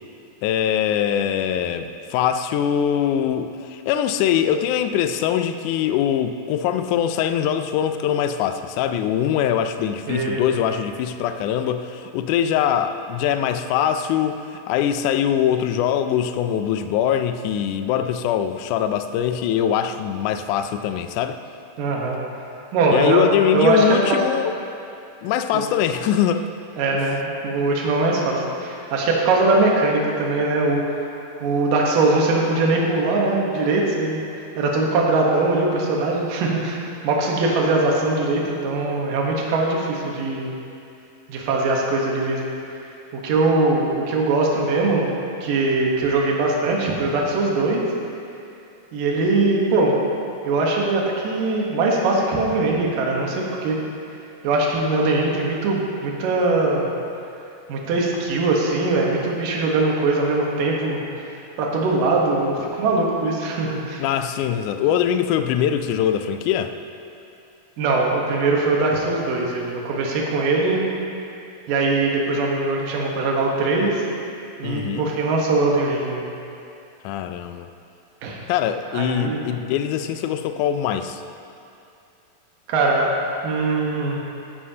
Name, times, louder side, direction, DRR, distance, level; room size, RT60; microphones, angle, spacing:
voice 1, 0.4-21.4 22.9-24.5 25.2-26.4 64.0-66.7 74.6-75.1 77.0-77.7 78.5-81.2, left 9 dB, 85° left, 9 dB, 1.8 m, -22 dB
voice 2, 10.1-10.4 21.8-22.2 22.7-24.2 25.5-25.6 26.8-31.0 31.4-34.2 34.6-40.5 41.3-42.5 43.1-45.1 45.4-47.8 48.9-50.0 50.5-53.8 54.4-56.9 57.7-61.0 61.6-64.0 67.8-70.8 71.7-74.0 74.6-76.2 78.2-78.4 78.9-79.4 82.7-83.1 83.4-84.2, right 3 dB, 70° right, -1 dB, 2.8 m, -21 dB
14.5 x 10.0 x 2.8 m, 2.6 s
omnidirectional pair, 4.1 m